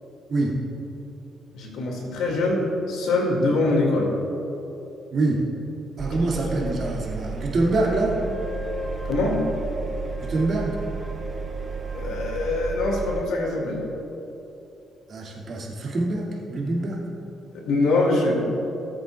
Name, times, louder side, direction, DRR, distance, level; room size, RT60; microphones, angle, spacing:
voice 1, 1.5-4.1 9.0-9.5 11.9-13.8 17.5-18.5, left 2 dB, 85° left, -1 dB, 2.1 m, -23 dB
voice 2, 5.1-5.5 6.0-8.2 10.2-10.8 15.1-17.0, right 2 dB, 55° right, -4 dB, 2.2 m, -25 dB
Engine, 6.0-13.3, right 5 dB, 35° right, 0.4 m, -33 dB
Wind instrument woodwind instrument, 8.1-13.8, left 3 dB, 5° left, 2.3 m, -39 dB
18.0 x 7.8 x 2.3 m, 3.0 s
cardioid pair, 90°, 0 cm